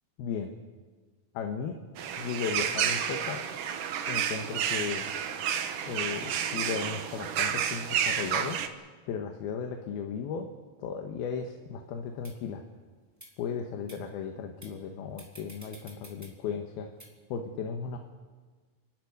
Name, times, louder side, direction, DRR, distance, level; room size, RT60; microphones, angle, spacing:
voice 1, 0.2-0.5 1.3-1.8 2.2-3.4 4.0-5.1 5.8-8.6 9.1-10.5 10.8-12.6 13.4-16.9 17.3-18.0, left 6 dB, 80° left, 4 dB, 3.0 m, -35 dB
sound 1, 2.0-8.7, right 8 dB, 65° right, 2.4 m, -31 dB
sound 2, 12.2-12.3 13.1-13.3 13.9-14.0 14.6-14.8 15.2-16.3 17.0-17.1, right 1 dB, 5° right, 3.0 m, -50 dB
28.0 x 12.5 x 9.7 m, 1.4 s
omnidirectional pair, 4.5 m